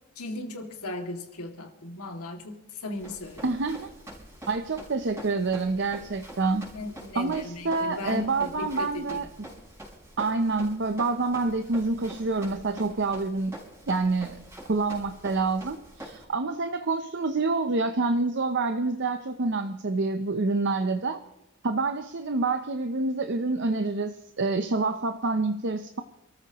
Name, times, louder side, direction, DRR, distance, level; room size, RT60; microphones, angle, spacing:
voice 1, 0.2-3.6 6.7-9.2, left 2 dB, 80° left, 3 dB, 2.3 m, -37 dB
Run, 3.0-16.2, right 1 dB, 10° right, 4.9 m, -45 dB
voice 2, 3.4-3.9 4.5-6.7 7.1-9.3 10.2-13.5 13.9-14.4 14.7-21.2 21.6-26.0, right 3 dB, 50° right, 8 dB, 0.7 m, -27 dB
27.5 x 14.0 x 3.0 m, 0.97 s
head